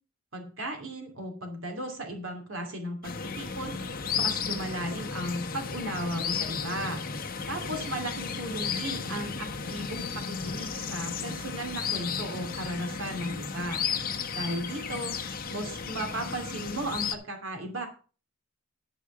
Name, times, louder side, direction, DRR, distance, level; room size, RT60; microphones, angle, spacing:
voice 1, 0.3-3.7 4.1-7.0 7.5-13.8 14.3-17.9, right 1 dB, 75° right, 4 dB, 2.8 m, -35 dB
sound 1, 3.0-17.2, left 6 dB, 50° left, 1.1 m, -34 dB
12.0 x 5.0 x 6.7 m, 0.36 s
head